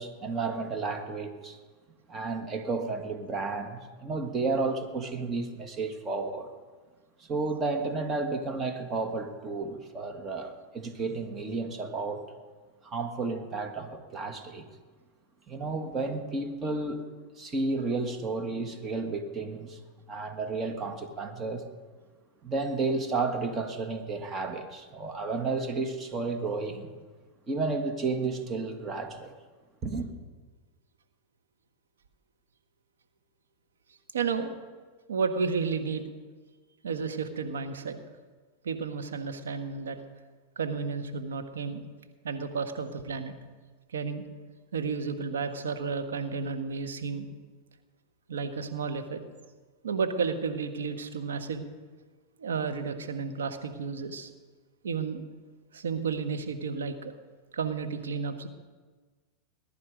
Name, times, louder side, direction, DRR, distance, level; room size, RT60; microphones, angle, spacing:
voice 1, 0.0-1.6 2.1-6.5 7.2-12.3 12.8-14.7 15.5-17.0 17.4-19.8 20.1-21.6 22.4-27.0 27.5-29.3 29.8-30.1, right 3 dB, 30° right, 2.0 m, -32 dB
voice 2, 34.1-34.5 35.1-36.1 36.8-38.0 38.6-40.0 40.5-41.8 42.2-43.4 43.9-44.2 44.7-47.3 48.3-49.2 49.8-51.7 52.4-54.3 54.8-55.2 55.7-57.1 57.5-58.5, right 5 dB, 85° right, 1.4 m, -32 dB
20.5 x 10.5 x 5.1 m
hypercardioid pair, 100°, 0 cm